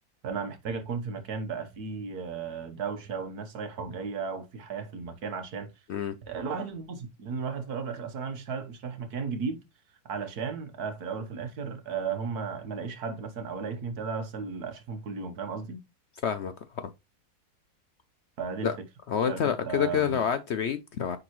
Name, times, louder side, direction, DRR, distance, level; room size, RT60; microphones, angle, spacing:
voice 1, 0.2-5.7 6.3-9.6 10.1-15.8 18.4-18.8 19.3-20.2, right 5 dB, 80° right, 1.7 m, -35 dB
voice 2, 19.1-21.2, left 8 dB, 65° left, 0.7 m, -27 dB
9.7 x 3.8 x 3.0 m
omnidirectional pair, 1.6 m